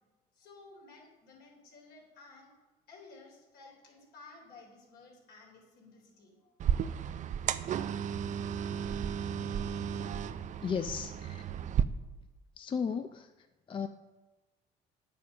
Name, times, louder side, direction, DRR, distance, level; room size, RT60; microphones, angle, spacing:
voice 1, 0.3-2.5 2.9-6.5, left 3 dB, 70° left, -1 dB, 3.5 m, -55 dB
sound 1, 6.6-11.8, right 8 dB, 45° right, 0.5 m, -33 dB
voice 2, 10.6-11.4 12.6-13.3 13.7-13.9, left 6 dB, 30° left, 9 dB, 0.5 m, -34 dB
9.2 x 7.1 x 6.4 m, 1.2 s
cardioid pair, 110°, 17 cm